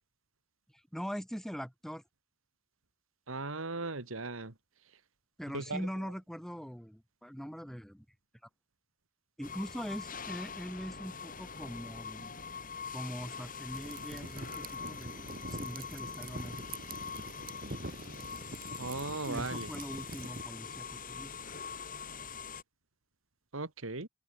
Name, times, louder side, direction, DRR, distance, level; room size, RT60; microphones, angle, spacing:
voice 1, 0.9-2.0 5.4-8.0 9.4-12.4 12.9-16.8 19.2-21.3, equal, ahead, 6.6 m, -42 dB
voice 2, 3.3-4.5 5.5-5.8 18.8-19.7 23.5-24.1, right 3 dB, 80° right, 2.5 m, -37 dB
sound 1, 9.4-22.6, left 6 dB, 45° left, 7.3 m, -44 dB
sound 2, 13.7-20.4, right 2 dB, 45° right, 6.8 m, -44 dB
open air
head